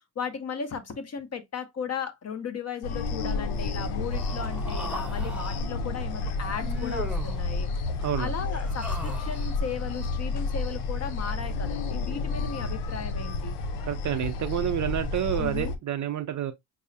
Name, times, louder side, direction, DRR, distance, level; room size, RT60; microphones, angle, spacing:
voice 1, 0.2-7.7 8.2-13.6 15.4-15.7, left 6 dB, 30° left, 0.7 m, -36 dB
sound 1, 2.8-15.8, left 3 dB, 90° left, 0.7 m, -31 dB
Human voice, 4.1-5.6 6.6-7.5 8.4-9.5, left 1 dB, ahead, 0.9 m, -38 dB
voice 2, 7.7-8.3 13.9-16.5, right 10 dB, 40° right, 0.4 m, -29 dB
5.3 x 2.0 x 2.6 m
cardioid pair, 95°, 49 cm